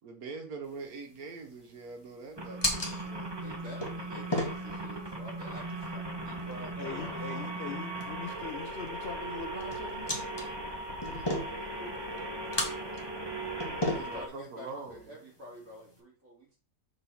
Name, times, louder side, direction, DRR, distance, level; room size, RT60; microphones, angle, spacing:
voice 1, 0.0-3.3 13.7-15.2, right 4 dB, 80° right, 1.5 m, -43 dB
sound 1, 0.7-16.0, left 1 dB, 20° left, 1.4 m, -39 dB
sound 2, 2.4-14.3, right 2 dB, 20° right, 1.0 m, -38 dB
voice 2, 3.4-7.5 11.1-13.1 13.8-16.6, equal, 65° right, 3.5 m, -49 dB
voice 3, 6.8-10.3 13.8-14.2, left 5 dB, 55° left, 0.8 m, -42 dB
6.7 x 4.2 x 4.2 m
omnidirectional pair, 1.5 m